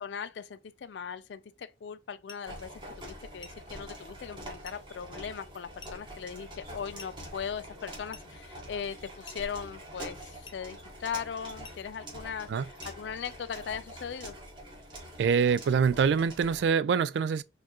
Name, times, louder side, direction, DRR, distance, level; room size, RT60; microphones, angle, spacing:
voice 1, 0.0-2.7 3.0-14.4, left 7 dB, 85° left, 0.4 m, -39 dB
sound 1, 2.3-2.5 3.4-3.7 4.6-4.9 5.8-6.1 7.0-7.3 8.1-8.4 9.3-9.5 10.5-10.7 11.6-11.9 12.8-13.1, left 4 dB, 25° left, 0.5 m, -50 dB
sound 2, 2.5-16.7, right 1 dB, 25° right, 1.3 m, -45 dB
voice 2, 15.2-17.4, right 6 dB, 80° right, 0.3 m, -25 dB
4.4 x 2.4 x 2.8 m
head